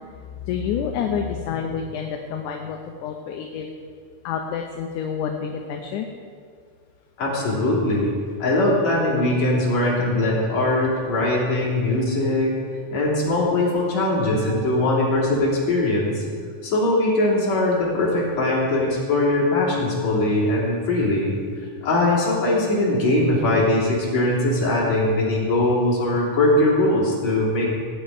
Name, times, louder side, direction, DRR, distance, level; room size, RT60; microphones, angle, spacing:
voice 1, 0.4-3.7 4.2-6.1, left 7 dB, 80° left, 3 dB, 2.3 m, -28 dB
voice 2, 7.2-8.1 8.4-12.5 12.9-16.3 16.6-21.3 21.8-27.7, left 1 dB, 60° left, -6 dB, 4.4 m, -21 dB
17.5 x 9.3 x 5.0 m, 2.1 s
omnidirectional pair, 3.6 m